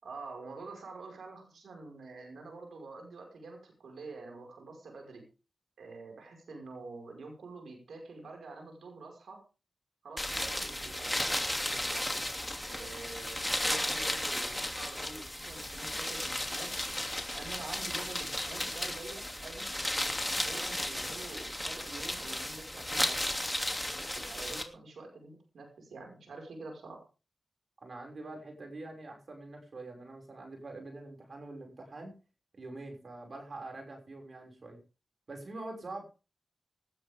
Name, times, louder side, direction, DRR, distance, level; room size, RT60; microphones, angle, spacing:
voice 1, 0.0-5.3 5.8-9.4 10.0-12.1 12.6-16.7 17.3-19.7 20.4-23.3 24.0-27.0, right 3 dB, 90° right, 2 dB, 5.6 m, -47 dB
sound 1, 10.2-24.6, left 1 dB, 10° left, 2.9 m, -34 dB
voice 2, 27.8-32.1 32.5-34.8 35.3-36.0, right 2 dB, 60° right, 3 dB, 6.3 m, -45 dB
19.0 x 13.0 x 3.7 m, 0.34 s
cardioid pair, 45°, 0 cm